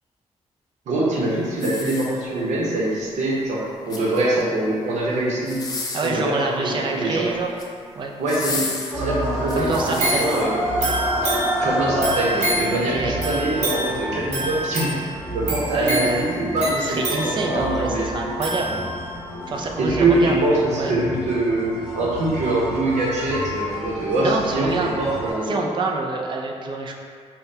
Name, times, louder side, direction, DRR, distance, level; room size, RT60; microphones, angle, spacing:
voice 1, 0.9-3.6 3.9-5.6 6.0-7.3 8.2-8.7 8.9-10.5 11.6-15.0 15.3-18.1 19.8-25.6, right 2 dB, 85° right, -5 dB, 0.9 m, -23 dB
sound 1, 1.5-2.6 3.7-4.5 5.4-6.2 7.3-7.7 8.3-10.4 11.0-11.2, left 3 dB, 35° left, 0.4 m, -32 dB
voice 2, 5.9-7.5 8.0-8.1 9.5-10.4 12.7-13.2 15.7-16.3 16.8-18.8 19.5-20.4 20.7-20.9 24.1-25.0 25.5-26.9, right 3 dB, 45° right, 1 dB, 0.4 m, -26 dB
sound 2, 8.9-25.3, equal, 15° right, 1.2 m, -30 dB
sound 3, 10.0-19.2 19.7-19.8, right 1 dB, 70° right, 1.3 m, -28 dB
5.6 x 2.2 x 2.7 m, 2.1 s
wide cardioid pair, 155°, 12 cm